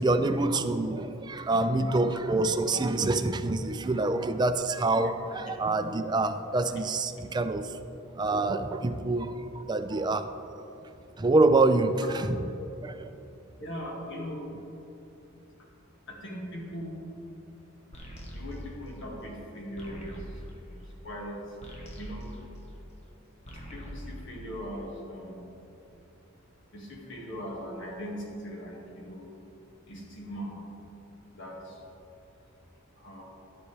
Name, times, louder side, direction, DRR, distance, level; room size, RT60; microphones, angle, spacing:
voice 1, 0.0-7.7 8.2-10.3 11.2-12.5 12.8-13.1, right 2 dB, 20° right, 8 dB, 0.4 m, -26 dB
voice 2, 13.6-14.5 16.1-17.0 18.3-20.8 21.0-21.6 22.0-22.3 23.7-25.4 26.7-29.3 29.9-30.6 31.3-31.8 33.0-33.2, equal, 65° left, -2 dB, 2.0 m, -40 dB
sound 1, 17.9-23.1 23.4-25.1, equal, 30° left, 1.1 m, -43 dB
11.0 x 10.0 x 3.3 m, 2.9 s
head